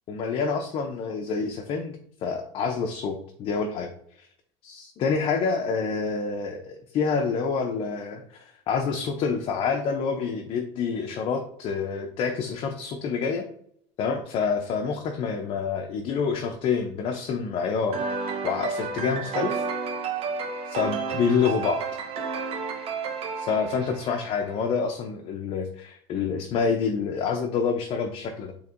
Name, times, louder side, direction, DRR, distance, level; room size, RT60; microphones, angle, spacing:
voice 1, 0.1-3.9 4.6-13.5 14.0-19.6 20.6-21.8 23.4-28.5, left 5 dB, 40° left, 4 dB, 0.5 m, -27 dB
sound 1, 17.9-24.6, right 5 dB, 45° right, 0.8 m, -31 dB
4.3 x 2.9 x 2.5 m, 0.69 s
cardioid pair, 135°, 14 cm